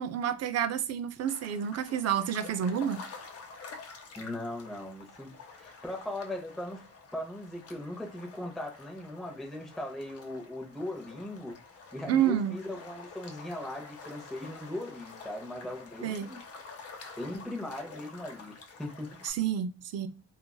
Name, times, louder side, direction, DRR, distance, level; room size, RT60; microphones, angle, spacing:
voice 1, 0.0-3.0 12.1-12.6 16.0-16.3 19.2-20.1, right 9 dB, 55° right, 0.5 m, -29 dB
sound 1, 1.3-19.3, left 4 dB, 50° left, 0.7 m, -49 dB
voice 2, 4.2-6.8 7.1-11.6 11.9-16.4 17.2-19.2, left 1 dB, ahead, 0.6 m, -39 dB
2.8 x 2.4 x 2.2 m
cardioid pair, 90°, 30 cm